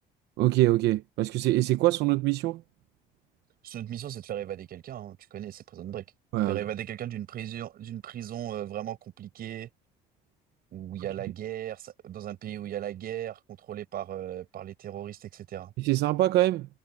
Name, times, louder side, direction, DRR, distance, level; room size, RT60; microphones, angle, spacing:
voice 1, 0.4-2.6 6.3-6.6 15.8-16.7, right 16 dB, 80° right, 0.9 m, -24 dB
voice 2, 3.6-6.0 6.5-9.7 10.7-13.4 13.7-15.7, right 11 dB, 60° right, 7.5 m, -37 dB
cardioid pair, 110°, 17 cm